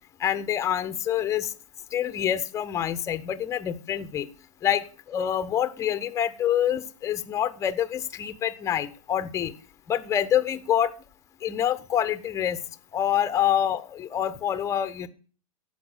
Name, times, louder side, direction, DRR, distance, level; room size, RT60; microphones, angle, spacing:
voice 1, 0.2-1.5 1.9-4.3 4.6-9.5 9.9-10.9 11.4-12.6 12.9-15.1, left 10 dB, 15° left, 12 dB, 0.9 m, -26 dB
14.0 x 5.5 x 6.7 m, 0.39 s
figure-of-eight pair, 100°, 18 cm